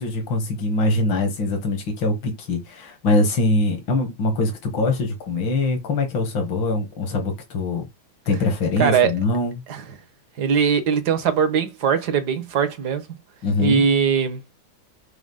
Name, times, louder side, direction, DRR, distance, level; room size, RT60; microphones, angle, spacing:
voice 1, 0.0-7.9 8.3-9.6 13.4-13.9, left 2 dB, 70° left, 2.5 m, -23 dB
voice 2, 8.8-9.1 9.7-9.8 10.4-13.0 13.6-14.4, right 7 dB, 55° right, 1.5 m, -20 dB
6.3 x 2.9 x 5.6 m
omnidirectional pair, 2.2 m